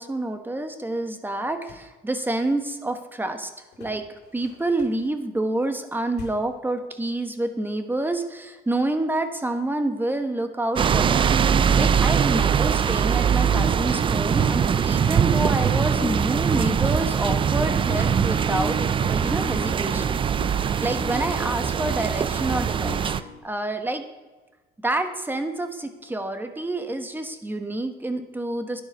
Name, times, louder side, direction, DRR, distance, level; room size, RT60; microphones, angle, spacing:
voice 1, 0.0-3.5 3.8-23.1 23.4-24.0 24.8-28.8, right 2 dB, 10° right, 7 dB, 1.1 m, -28 dB
sound 1, 1.5-2.0 3.7-5.2 6.1-6.6, left 7 dB, 70° left, 2.5 m, -46 dB
sound 2, 10.8-23.2, right 7 dB, 30° right, 0.4 m, -22 dB
sound 3, 13.2-23.4, left 5 dB, 50° left, 1.8 m, -39 dB
11.5 x 10.0 x 5.3 m, 1.2 s
cardioid pair, 110°, 17 cm